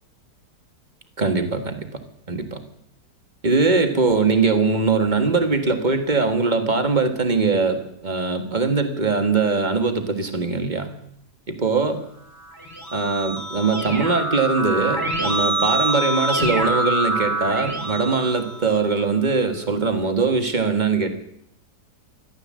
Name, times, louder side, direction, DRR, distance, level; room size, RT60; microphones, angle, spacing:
voice 1, 1.2-1.8 2.3-2.6 3.4-10.9 11.5-12.0 12.9-21.1, right 4 dB, 25° right, 7 dB, 1.8 m, -21 dB
Keyboard (musical), 12.4-19.1, right 2 dB, 10° right, 3.4 m, -26 dB
14.5 x 12.0 x 7.6 m, 0.74 s
omnidirectional pair, 1.8 m